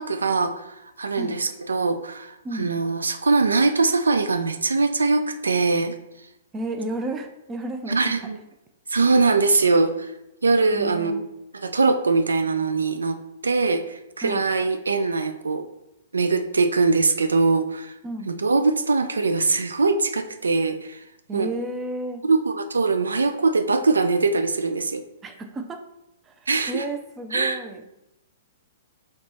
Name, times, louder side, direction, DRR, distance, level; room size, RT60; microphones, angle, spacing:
voice 1, 0.0-6.0 7.9-8.4 8.9-10.1 10.4-11.3 11.6-15.7 16.1-17.9 18.3-21.0 21.3-21.5 22.2-25.1 26.5-26.8 27.3-27.6, right 3 dB, 75° right, 8 dB, 0.3 m, -22 dB
voice 2, 6.5-8.1 10.7-11.3 14.2-14.4 18.0-18.3 21.3-22.2 25.2-25.8 26.2-27.8, right 2 dB, 20° right, 5 dB, 0.5 m, -32 dB
3.3 x 3.0 x 4.2 m, 0.90 s
figure-of-eight pair, 115°, 0 cm